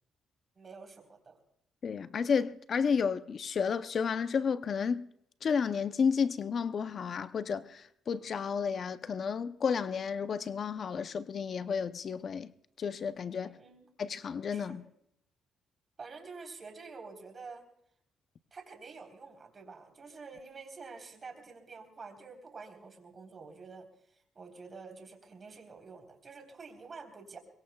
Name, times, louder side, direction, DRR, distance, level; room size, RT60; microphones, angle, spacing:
voice 1, 0.6-1.4 13.4-13.9 14.5-14.8 16.0-17.6 18.5-27.4, right 4 dB, 40° right, 3.7 m, -48 dB
voice 2, 1.8-5.1 5.4-12.5 12.8-13.6 14.0-14.8, left 6 dB, 50° left, 0.6 m, -32 dB
23.0 x 22.0 x 2.3 m
cardioid pair, 90°, 0 cm